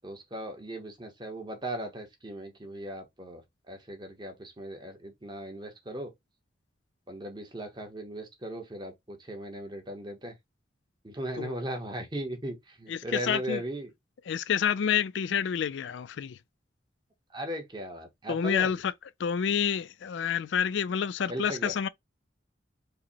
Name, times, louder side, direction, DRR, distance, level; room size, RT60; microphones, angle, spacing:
voice 1, 0.0-3.4 3.7-6.1 7.1-10.3 11.0-13.9 17.3-18.8 21.3-21.7, equal, 25° right, 1.0 m, -37 dB
voice 2, 12.9-13.6 14.3-16.4 18.3-18.9 19.2-21.9, left 7 dB, 70° left, 0.4 m, -28 dB
4.8 x 2.1 x 2.8 m
head